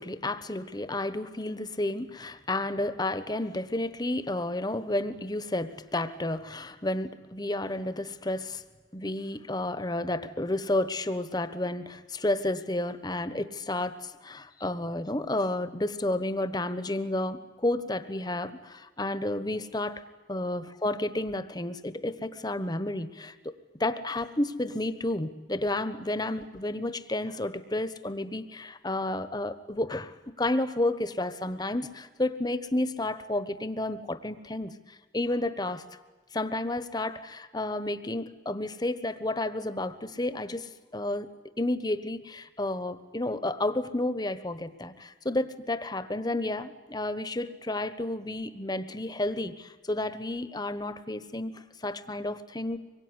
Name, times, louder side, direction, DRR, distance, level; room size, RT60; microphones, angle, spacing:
voice 1, 0.0-8.6 8.9-20.0 20.3-23.5 23.8-34.7 35.1-35.8 36.3-41.3 41.6-52.8, left 1 dB, 25° left, 12 dB, 1.3 m, -31 dB
25.5 x 22.5 x 9.9 m, 1.2 s
head